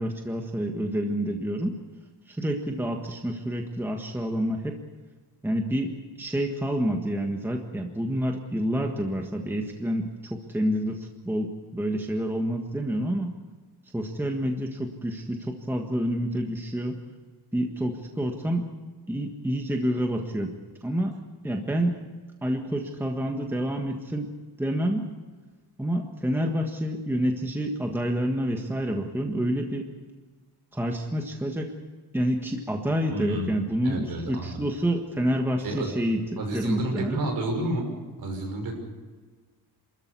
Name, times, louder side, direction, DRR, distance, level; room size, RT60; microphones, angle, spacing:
voice 1, 0.0-1.8 2.3-4.8 5.4-5.9 6.2-13.3 13.9-17.0 17.5-18.7 19.1-20.5 20.8-21.2 21.4-22.0 22.4-24.3 24.6-25.1 25.8-29.9 30.7-31.7 32.1-36.2 36.5-37.2, equal, 5° right, 2 dB, 1.6 m, -28 dB
voice 2, 33.1-34.6 35.6-36.0 36.4-37.9 38.2-38.8, right 1 dB, 55° right, 2 dB, 5.9 m, -31 dB
28.0 x 14.0 x 8.4 m, 1.4 s
wide cardioid pair, 165°, 41 cm